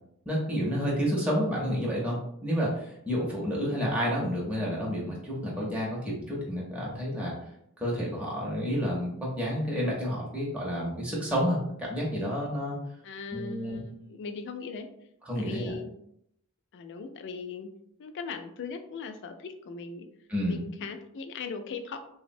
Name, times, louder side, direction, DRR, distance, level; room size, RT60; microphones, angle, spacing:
voice 1, 0.3-7.3 7.8-12.8 13.3-13.8 15.3-15.7 20.3-20.6, equal, 5° right, -5 dB, 0.6 m, -30 dB
voice 2, 13.0-14.9 15.4-15.9 16.7-17.7 18.0-20.1 20.5-22.0, left 5 dB, 55° left, 7 dB, 0.3 m, -39 dB
3.4 x 2.0 x 2.5 m, 0.74 s
head